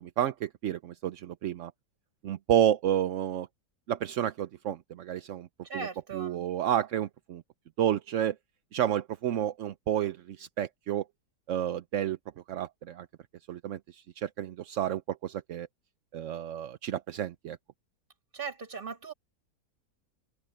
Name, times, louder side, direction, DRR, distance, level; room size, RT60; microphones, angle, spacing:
voice 1, 0.0-1.7 2.2-3.5 3.9-5.5 5.7-5.9 6.1-7.4 7.8-8.4 8.7-11.0 11.5-12.2 12.5-13.1 13.5-15.7 16.1-17.6, right 10 dB, 60° right, 0.8 m, -30 dB
voice 2, 5.6-6.5 18.3-19.1, right 5 dB, 30° right, 1.9 m, -38 dB
open air
omnidirectional pair, 1.8 m